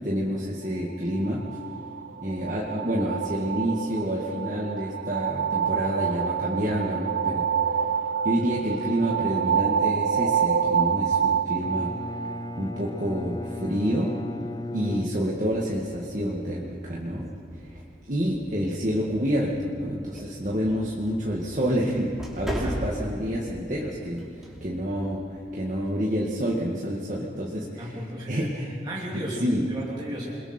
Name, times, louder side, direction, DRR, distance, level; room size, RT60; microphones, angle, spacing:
voice 1, 0.0-1.4 2.2-7.8 8.2-12.0 12.6-14.1 14.7-28.0 28.3-28.8 29.1-29.7, equal, 45° right, -4 dB, 2.1 m, -28 dB
sound 1, 1.1-12.8, right 7 dB, 80° right, 0.8 m, -27 dB
Bowed string instrument, 11.6-15.8, left 2 dB, 20° left, 0.5 m, -36 dB
sound 2, 15.1-26.0, equal, ahead, 3.0 m, -40 dB
voice 2, 22.6-23.0 27.8-28.5 28.8-30.4, equal, 25° right, -5 dB, 2.7 m, -35 dB
28.5 x 22.5 x 4.5 m, 2.6 s
head